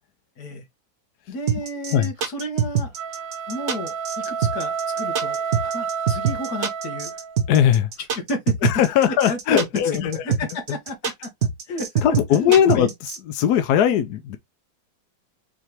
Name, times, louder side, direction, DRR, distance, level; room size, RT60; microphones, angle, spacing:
voice 1, 1.3-2.9 3.5-7.2 8.1-8.6 9.1-11.3 11.7-12.0 12.3-12.9, left 1 dB, 55° left, 1.6 m, -31 dB
sound 1, 1.5-13.2, right 7 dB, 55° right, 0.8 m, -24 dB
sound 2, 2.9-7.4, right 6 dB, 75° right, 1.2 m, -29 dB
voice 2, 7.5-7.9 8.6-10.4 12.0-12.9 13.3-14.4, left 9 dB, 75° left, 0.9 m, -19 dB
4.9 x 3.2 x 2.8 m
omnidirectional pair, 2.2 m